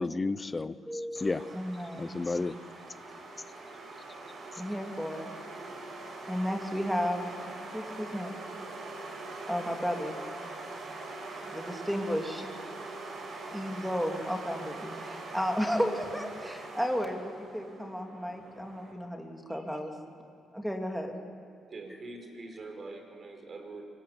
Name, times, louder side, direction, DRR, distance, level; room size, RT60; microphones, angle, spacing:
voice 1, 0.0-1.5 2.0-2.6, left 3 dB, 25° left, 16 dB, 0.8 m, -32 dB
voice 2, 0.9-2.2 4.6-8.4 9.3-10.5 11.5-12.9 13.5-19.9 20.5-21.2, equal, ahead, 3 dB, 3.0 m, -34 dB
sound 1, 1.2-18.9, right 2 dB, 60° right, 6.8 m, -43 dB
voice 3, 21.7-23.8, right 3 dB, 40° right, 4 dB, 5.7 m, -44 dB
24.5 x 23.0 x 9.9 m, 2.3 s
cardioid pair, 90°, 0 cm